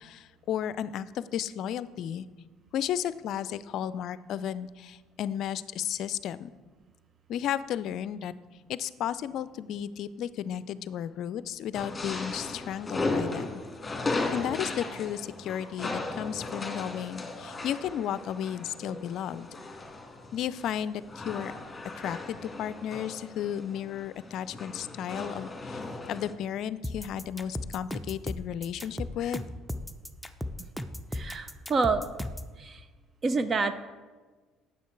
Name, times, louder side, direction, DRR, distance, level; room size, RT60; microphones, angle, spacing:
voice 1, 0.0-2.3 2.7-6.5 7.3-8.3 8.7-13.6 14.1-19.5 20.3-21.5 21.9-25.8 26.1-29.4, left 10 dB, 65° left, 16 dB, 0.4 m, -34 dB
sound 1, 11.7-26.3, left 3 dB, 20° left, 1.8 m, -36 dB
sound 2, 26.8-32.5, left 1 dB, 5° left, 0.7 m, -36 dB
voice 2, 31.1-32.0 32.6-32.8 33.2-33.7, right 4 dB, 40° right, 11 dB, 0.6 m, -27 dB
9.2 x 7.1 x 4.6 m, 1.4 s
hypercardioid pair, 65°, 0 cm